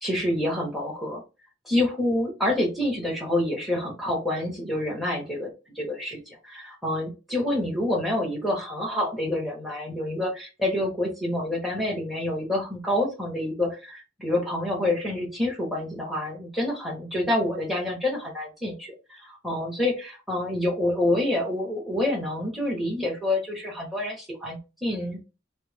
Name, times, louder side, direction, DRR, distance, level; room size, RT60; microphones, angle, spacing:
voice 1, 0.0-1.2 1.6-25.3, left 1 dB, ahead, -2 dB, 1.3 m, -27 dB
4.3 x 2.1 x 3.4 m, 0.28 s
head